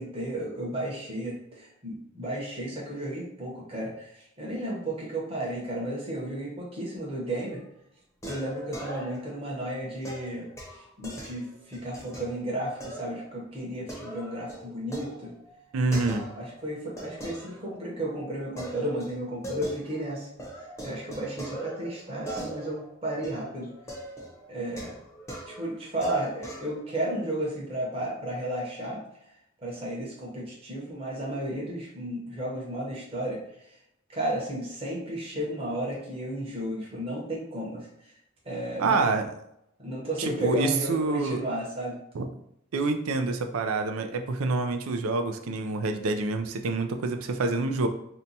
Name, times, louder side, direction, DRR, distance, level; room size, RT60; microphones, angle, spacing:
voice 1, 0.0-7.6 8.2-15.3 15.9-20.3 20.8-23.7 24.5-25.0 25.5-29.0 29.6-33.4 34.1-38.1 38.4-39.1 39.8-42.0, right 1 dB, 25° right, -5 dB, 0.9 m, -33 dB
sound 1, 7.2-7.7 8.2-9.4 10.0-12.3 12.8-13.3 13.6-16.6 17.0-18.1 18.6-20.1 20.4-26.7, right 1 dB, 15° left, 0.7 m, -41 dB
voice 2, 15.7-16.2 38.8-39.3 40.2-41.4 42.1-42.3 42.7-47.9, right 3 dB, 85° right, 6 dB, 0.4 m, -27 dB
2.8 x 2.2 x 3.9 m, 0.76 s
head